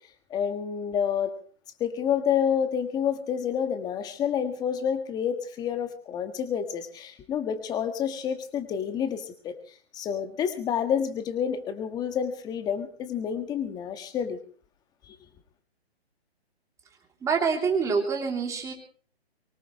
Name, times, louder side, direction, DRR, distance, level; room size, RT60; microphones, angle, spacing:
voice 1, 0.3-1.3 1.8-14.4, left 8 dB, 10° left, 8 dB, 1.6 m, -29 dB
voice 2, 17.2-18.7, right 5 dB, 10° right, 3 dB, 3.1 m, -26 dB
24.0 x 18.5 x 3.2 m, 0.43 s
hypercardioid pair, 150°, 32 cm